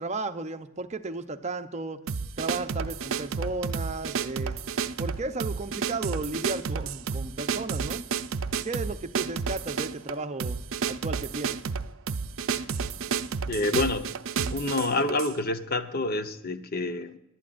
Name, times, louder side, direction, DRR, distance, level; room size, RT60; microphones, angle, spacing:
voice 1, 0.0-2.0 2.4-4.6 5.0-8.1 8.6-10.6 10.9-11.6, right 3 dB, 35° right, 0.7 m, -34 dB
sound 1, 2.1-15.4, right 5 dB, 70° right, 0.5 m, -31 dB
voice 2, 13.4-14.2 14.5-17.2, left 2 dB, 45° left, 0.9 m, -28 dB
22.5 x 11.5 x 2.5 m
head